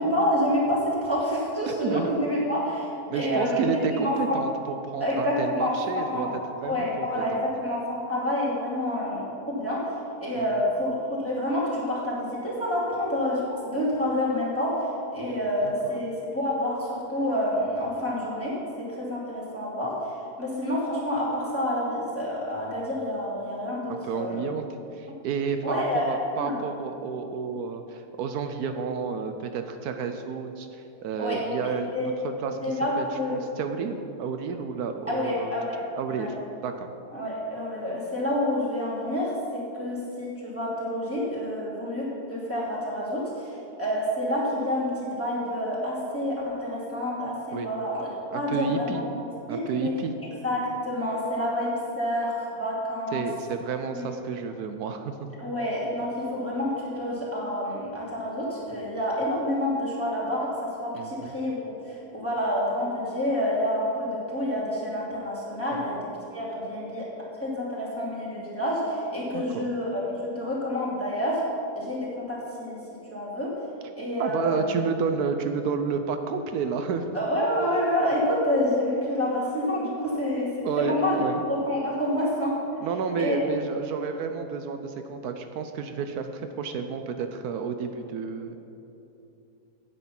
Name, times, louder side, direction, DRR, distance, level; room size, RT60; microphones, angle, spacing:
voice 1, 0.0-4.4 5.0-9.9 10.2-20.1 20.4-24.4 25.1-25.2 25.6-26.6 31.1-32.1 32.6-33.4 35.1-35.8 36.1-36.3 37.1-48.1 48.3-48.9 49.5-49.9 50.4-53.3 53.9-54.0 55.4-67.1 67.4-71.4 71.7-72.8 73.1-73.5 74.0-74.7 77.1-81.2 81.5-82.6 83.2-83.4, left 1 dB, 10° left, -8 dB, 2.6 m, -28 dB
voice 2, 1.7-2.1 3.1-7.4 10.3-10.4 15.6-16.0 23.9-24.6 24.9-32.6 33.0-35.6 36.0-36.4 36.6-36.9 47.5-47.7 48.3-49.0 49.5-50.1 53.1-55.1 60.9-61.3 65.7-65.8 69.3-69.7 74.2-77.2 80.6-81.4 82.8-88.6, right 5 dB, 80° right, 7 dB, 1.1 m, -31 dB
9.1 x 8.2 x 5.8 m, 2.8 s
omnidirectional pair, 1.6 m